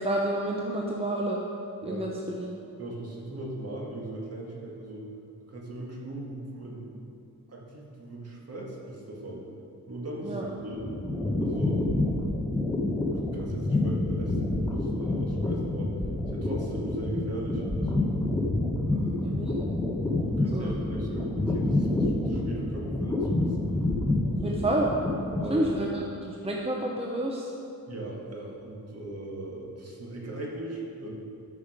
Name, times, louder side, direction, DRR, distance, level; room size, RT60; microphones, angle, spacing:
voice 1, 0.0-1.4 1.8-2.5 10.2-10.5 19.2-19.8 20.5-20.8 24.2-24.9 25.5-27.5, right 1 dB, 15° right, -1 dB, 0.8 m, -30 dB
voice 2, 2.8-5.1 5.5-7.0 7.5-9.4 9.9-10.8 11.4-11.9 12.6-12.8 13.3-15.9 16.3-18.1 18.9-19.3 20.2-23.6 24.4-24.6 25.4-25.7 27.9-31.1, right 1 dB, 45° right, -3 dB, 2.1 m, -38 dB
sound 1, 10.4-25.9, left 2 dB, 10° left, 1.2 m, -28 dB
12.5 x 5.6 x 5.1 m, 2.6 s
wide cardioid pair, 110°, 35 cm